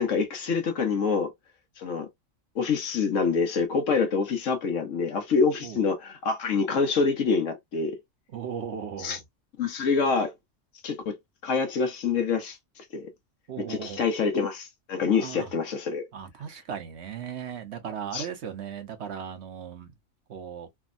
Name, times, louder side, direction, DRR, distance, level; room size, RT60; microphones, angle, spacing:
voice 1, 0.0-1.3 1.8-2.1 2.5-8.0 9.0-9.2 9.6-10.3 10.8-11.2 11.4-13.1 13.6-16.1 18.1-18.3, left 5 dB, 75° left, 1.2 m, -26 dB
voice 2, 8.3-9.2 13.5-14.0 15.1-15.5 16.1-19.9 20.3-20.7, right 8 dB, 60° right, 0.9 m, -37 dB
3.4 x 2.1 x 2.3 m
omnidirectional pair, 1.3 m